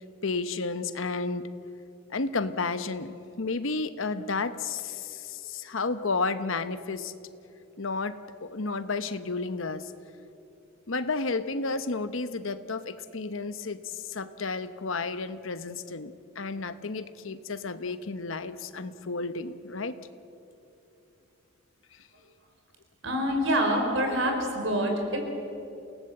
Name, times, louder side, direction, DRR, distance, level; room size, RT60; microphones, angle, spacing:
voice 1, 0.2-1.5 2.1-7.1 7.8-9.9 10.9-20.0, left 3 dB, 70° left, 11 dB, 1.0 m, -32 dB
voice 2, 23.0-25.2, equal, 65° right, 3 dB, 4.6 m, -26 dB
28.5 x 18.0 x 7.8 m, 2.9 s
head